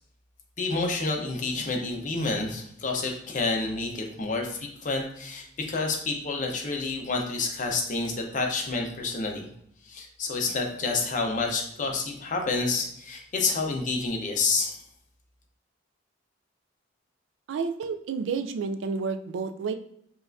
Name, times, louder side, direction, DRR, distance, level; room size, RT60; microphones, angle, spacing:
voice 1, 0.6-9.5 9.8-14.8, left 3 dB, 40° left, 2 dB, 0.6 m, -29 dB
voice 2, 17.5-19.8, right 5 dB, 70° right, 8 dB, 0.3 m, -30 dB
5.2 x 2.4 x 2.5 m, 0.72 s
head